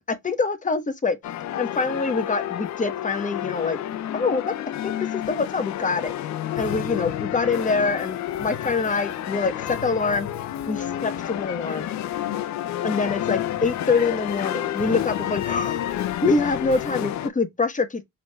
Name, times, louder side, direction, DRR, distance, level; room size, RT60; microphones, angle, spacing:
voice 1, 0.2-1.2 1.6-3.8 4.1-4.5 4.8-6.1 6.6-10.3 10.7-11.9 12.8-15.9 16.2-18.0, left 4 dB, 25° left, 1.0 m, -25 dB
sound 1, 1.2-17.3, left 12 dB, 65° left, 0.5 m, -30 dB
4.8 x 3.3 x 2.2 m
cardioid pair, 90°, 30 cm